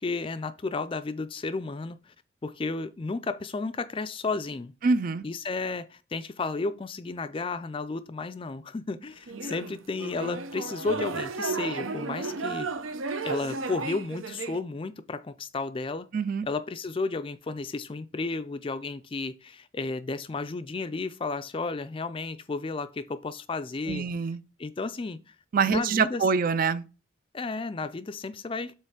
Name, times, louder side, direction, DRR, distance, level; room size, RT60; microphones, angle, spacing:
voice 1, 0.0-2.1 2.4-4.7 5.2-12.7 13.2-16.1 16.4-24.1 24.6-25.3 25.7-26.2 27.3-28.7, left 3 dB, 25° left, 0.4 m, -33 dB
voice 2, 4.8-5.2 16.1-16.5 23.9-24.4 25.5-26.8, right 5 dB, 45° right, 0.4 m, -25 dB
sound 1, 9.3-14.6, right 3 dB, 80° right, 0.7 m, -33 dB
7.4 x 3.1 x 4.9 m
head